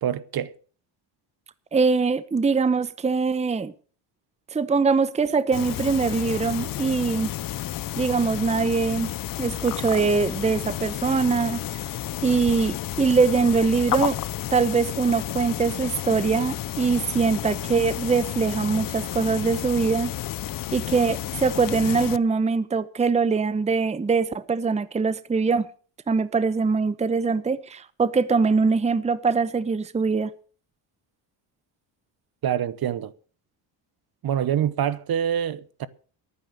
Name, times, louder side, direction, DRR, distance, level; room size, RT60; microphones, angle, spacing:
voice 1, 0.0-0.5 32.4-33.1 34.2-35.9, right 9 dB, 45° right, 0.9 m, -25 dB
voice 2, 1.7-3.7 4.5-7.3 8.0-9.1 9.4-11.8 12.2-14.2 14.5-20.1 20.7-25.7 26.1-30.3, right 4 dB, 15° right, 0.7 m, -23 dB
sound 1, 5.5-22.2, left 14 dB, 45° left, 0.5 m, -31 dB
11.5 x 9.7 x 6.7 m
cardioid pair, 90°, 50 cm